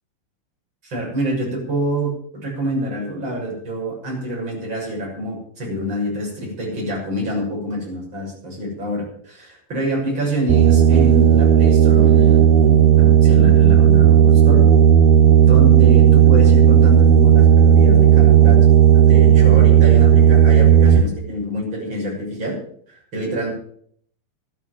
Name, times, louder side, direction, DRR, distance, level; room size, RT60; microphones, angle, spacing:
voice 1, 0.8-14.6 15.4-18.6 18.9-22.6 22.9-23.5, equal, 25° right, -3 dB, 6.9 m, -26 dB
sound 1, 10.5-21.0, right 9 dB, 80° right, 2.2 m, -12 dB
13.0 x 10.0 x 7.4 m, 0.62 s
omnidirectional pair, 5.5 m